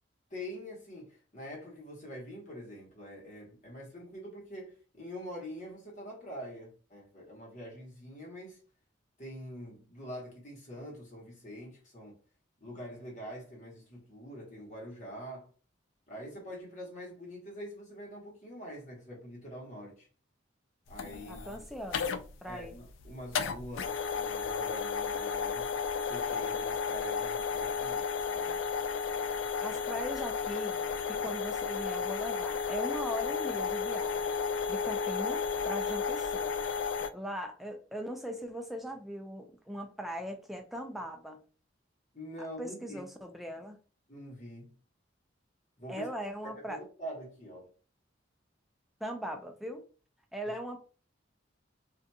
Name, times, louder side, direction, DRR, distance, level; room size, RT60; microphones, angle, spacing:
voice 1, 0.3-8.6 9.2-12.1 12.6-15.5 16.1-20.1 20.9-21.5 22.5-25.8 26.1-28.6 42.1-43.0 44.1-44.8 45.8-46.1 46.7-47.7, equal, 40° left, 1.1 m, -45 dB
sound 1, 20.9-37.1, left 6 dB, 90° left, 0.3 m, -33 dB
voice 2, 21.3-22.2 22.4-22.7 29.6-30.8 31.1-34.4 34.7-36.6 37.1-41.4 42.4-43.8 45.9-46.8 49.0-49.9 50.3-50.8, equal, ahead, 0.3 m, -40 dB
2.8 x 2.5 x 2.2 m
head